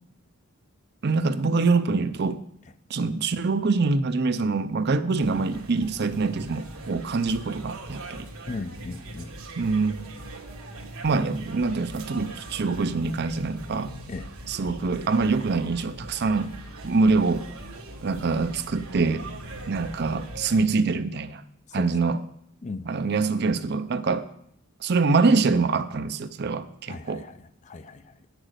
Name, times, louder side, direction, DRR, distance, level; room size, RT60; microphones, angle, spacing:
voice 1, 1.0-2.4 2.9-8.3 9.6-10.0 11.0-13.9 14.5-16.5 16.8-17.4 18.0-19.3 19.7-21.4 21.7-22.2 22.9-24.3 24.8-27.2, right 4 dB, 50° right, 12 dB, 0.5 m, -24 dB
sound 1, 5.2-20.6, right 1 dB, 80° right, 1.5 m, -41 dB
voice 2, 8.5-9.4 14.1-14.3 21.7-21.9 22.6-22.9 26.9-28.2, left 3 dB, 35° left, 12 dB, 0.4 m, -37 dB
8.9 x 6.1 x 6.5 m, 0.73 s
head